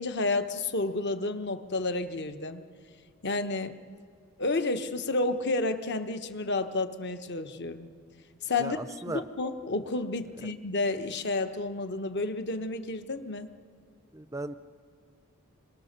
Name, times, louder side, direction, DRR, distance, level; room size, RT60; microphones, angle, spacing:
voice 1, 0.0-2.6 3.2-3.8 4.4-7.9 8.4-8.8 9.1-13.5, left 2 dB, 50° left, 9 dB, 1.1 m, -31 dB
voice 2, 8.6-9.2 10.3-10.5 14.1-14.5, right 2 dB, 15° right, 12 dB, 0.5 m, -37 dB
27.5 x 23.5 x 6.7 m, 2.4 s
head